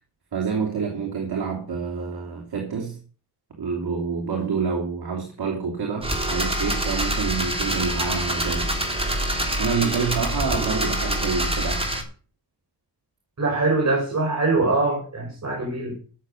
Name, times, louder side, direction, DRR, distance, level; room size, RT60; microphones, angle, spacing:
voice 1, 0.3-3.0 3.5-8.7 9.6-11.9, right 5 dB, 65° right, 3.1 m, -27 dB
sound 1, 6.0-12.0, right 1 dB, 15° right, 3.4 m, -25 dB
voice 2, 13.4-15.9, right 3 dB, 40° right, 5.4 m, -23 dB
13.5 x 7.2 x 6.5 m
cardioid pair, 85°, 41 cm